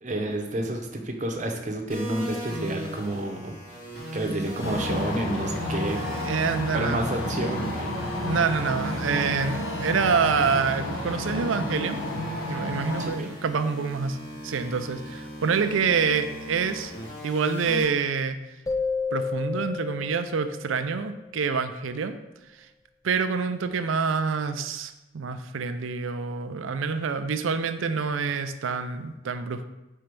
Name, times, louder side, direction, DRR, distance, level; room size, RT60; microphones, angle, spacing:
voice 1, 0.0-3.5 4.1-6.1 6.7-7.9 13.0-13.3, right 1 dB, 40° right, 3 dB, 0.7 m, -30 dB
sound 1, 1.9-17.8, equal, 50° left, 1.9 m, -38 dB
sound 2, 4.6-13.1, left 1 dB, 85° left, 1.1 m, -31 dB
voice 2, 6.0-7.0 8.2-12.1 12.5-14.2 14.4-16.9 17.2-18.4 19.1-22.2 23.0-29.6, right 5 dB, 85° right, 10 dB, 0.5 m, -27 dB
sound 3, 18.7-21.3, left 5 dB, 15° left, 0.3 m, -31 dB
4.5 x 4.3 x 5.2 m, 1.0 s
head